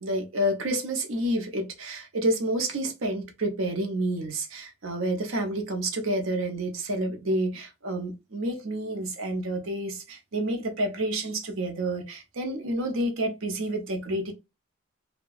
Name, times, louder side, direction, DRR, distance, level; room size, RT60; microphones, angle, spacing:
voice 1, 0.0-14.3, right 1 dB, 80° right, 0.8 m, -29 dB
2.8 x 2.3 x 2.3 m
head